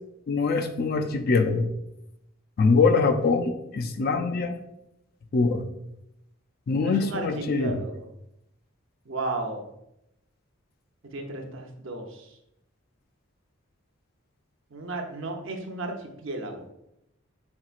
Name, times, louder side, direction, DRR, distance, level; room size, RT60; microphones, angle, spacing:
voice 1, 0.3-1.7 2.6-4.5 5.3-5.6 6.7-7.8, left 4 dB, 45° left, 7 dB, 0.3 m, -23 dB
voice 2, 6.7-8.1 9.1-9.7 11.1-12.4 14.7-16.7, right 2 dB, 65° right, 3 dB, 0.6 m, -34 dB
4.4 x 3.7 x 2.4 m, 0.83 s
head